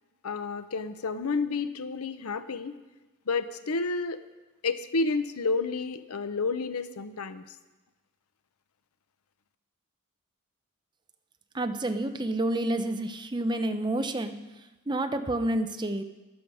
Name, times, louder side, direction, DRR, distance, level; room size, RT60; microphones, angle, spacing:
voice 1, 0.2-2.8 3.3-4.2 4.6-7.4, left 4 dB, 85° left, 12 dB, 0.7 m, -30 dB
voice 2, 11.5-14.3 14.9-16.0, right 1 dB, 20° right, 7 dB, 0.6 m, -29 dB
13.0 x 12.0 x 4.8 m, 1.1 s
head